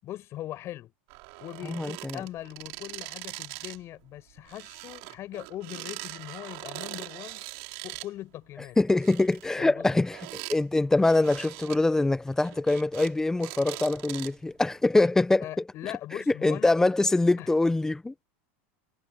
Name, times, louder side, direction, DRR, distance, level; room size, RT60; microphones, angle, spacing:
voice 1, 0.0-0.9 1.4-7.4 7.8-8.8 9.6-10.0 15.4-16.7 17.4-17.5, left 14 dB, 40° left, 6.9 m, -40 dB
sound 1, 1.1-3.8 4.1-8.1 8.8-10.6 11.0-11.8 12.3-13.1 13.4-14.5 15.1-15.2, right 30 dB, 65° right, 5.5 m, -41 dB
voice 2, 1.6-2.2 8.8-15.6 16.3-18.1, left 2 dB, 10° left, 0.9 m, -24 dB
supercardioid pair, 130°, 7 cm